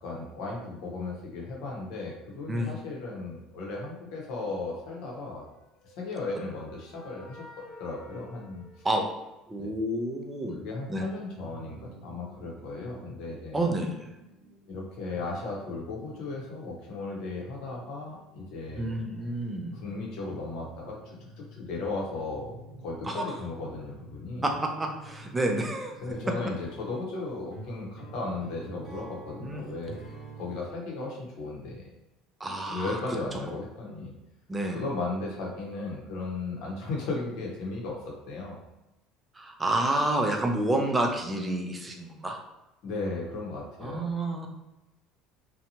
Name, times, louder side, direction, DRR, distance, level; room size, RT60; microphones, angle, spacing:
voice 1, 0.0-5.5 5.8-7.4 7.8-8.7 9.6-9.7 10.6-13.6 14.7-18.9 19.8-22.5 22.8-24.4 26.0-30.0 30.3-31.9 32.7-34.1 34.7-38.6 42.8-44.0 44.3-44.5, left 3 dB, 65° left, -2 dB, 0.8 m, -36 dB
sound 1, 5.7-9.6, left 3 dB, 40° left, 0.6 m, -51 dB
voice 2, 9.5-10.6 10.9-11.0 13.5-14.1 18.8-19.8 23.0-23.2 24.4-26.0 29.4-29.6 32.4-33.2 34.5-34.8 39.3-42.4 43.8-44.5, right 1 dB, 15° right, 2 dB, 0.4 m, -29 dB
sound 2, 11.3-26.1, right 1 dB, 85° right, 0.7 m, -51 dB
sound 3, 24.5-30.6, right 4 dB, 10° left, 1.1 m, -47 dB
2.7 x 2.2 x 2.7 m, 0.97 s
cardioid pair, 125°, 0 cm